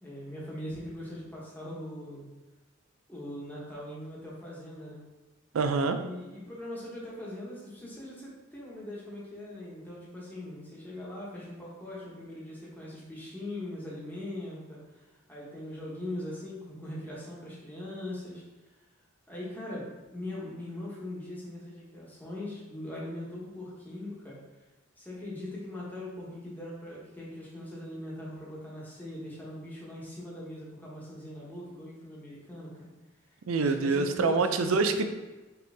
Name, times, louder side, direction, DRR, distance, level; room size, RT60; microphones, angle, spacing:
voice 1, 0.0-2.3 3.1-5.0 5.9-18.4 19.3-24.4 25.0-32.9 33.6-35.1, left 1 dB, 10° left, -6 dB, 1.2 m, -41 dB
voice 2, 5.5-6.0 33.5-35.1, right 4 dB, 85° right, 8 dB, 0.4 m, -26 dB
4.9 x 3.1 x 3.4 m, 1.2 s
head